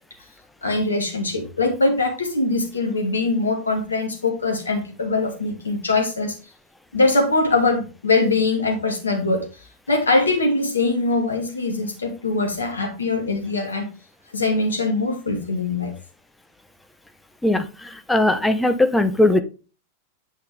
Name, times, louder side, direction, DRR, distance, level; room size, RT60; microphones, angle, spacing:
voice 1, 0.6-6.3 6.9-9.4 9.9-13.9 14.3-15.9, left 3 dB, 75° left, 2 dB, 2.5 m, -22 dB
voice 2, 18.1-19.4, left 1 dB, 5° left, 9 dB, 1.0 m, -18 dB
8.5 x 6.1 x 3.4 m, 0.32 s
figure-of-eight pair, 90°, 0 cm